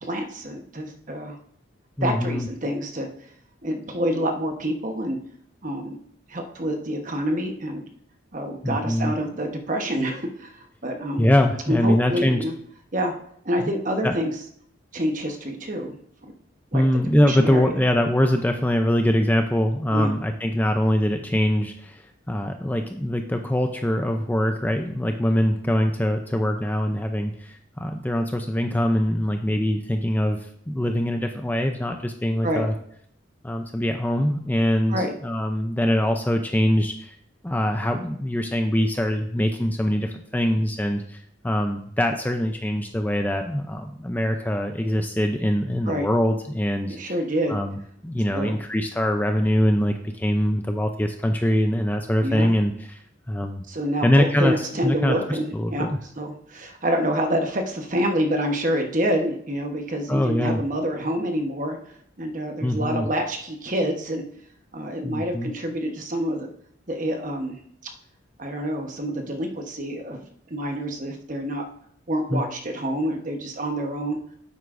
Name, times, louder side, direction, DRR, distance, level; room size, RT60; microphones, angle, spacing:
voice 1, 0.0-1.3 2.0-3.1 3.6-5.2 5.6-6.0 6.3-7.8 8.3-11.2 11.7-12.5 12.9-13.1 13.4-14.3 14.9-16.3 16.7-16.8 17.3-17.8 19.9-20.1 32.4-32.6 34.9-35.1 45.9-46.1 46.9-47.6 48.3-48.6 52.2-52.5 53.7-55.9 56.2-61.8 62.2-64.2 64.7-66.5 66.9-67.6 68.4-70.2 70.5-71.6 72.1-74.2, equal, 40° right, 4 dB, 1.1 m, -27 dB
voice 2, 2.0-2.5 8.6-9.1 11.2-12.4 13.6-13.7 14.0-14.1 16.7-30.4 30.7-32.7 33.4-37.2 37.4-47.0 47.5-53.0 53.3-53.6 54.0-56.0 60.1-60.6 62.6-63.1 65.0-65.5 72.3-72.4, equal, 10° left, 5 dB, 0.4 m, -23 dB
9.6 x 8.0 x 2.6 m, 0.67 s
head